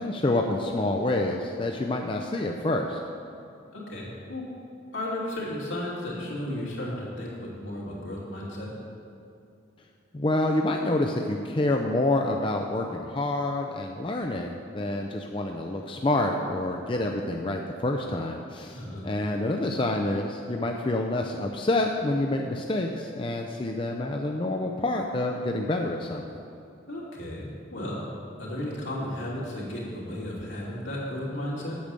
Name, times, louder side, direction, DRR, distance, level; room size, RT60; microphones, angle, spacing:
voice 1, 0.0-3.0 10.1-26.2, left 2 dB, 25° left, 2 dB, 0.5 m, -27 dB
voice 2, 3.7-4.4 4.9-8.7 18.7-19.0 26.9-28.1 28.4-31.8, left 1 dB, 75° left, -6 dB, 2.9 m, -34 dB
8.5 x 6.7 x 7.5 m, 2.6 s
head